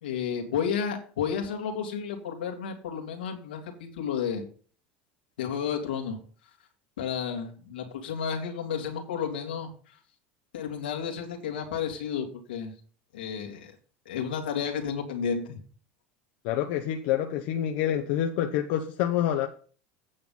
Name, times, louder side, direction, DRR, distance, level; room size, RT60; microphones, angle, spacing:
voice 1, 0.0-4.4 5.4-6.2 7.0-9.7 10.5-12.7 13.1-13.7 14.1-15.6, left 7 dB, 90° left, 2.3 m, -32 dB
voice 2, 16.4-19.5, left 11 dB, 70° left, 1.0 m, -27 dB
8.8 x 7.0 x 5.5 m
hypercardioid pair, 95°, 5 cm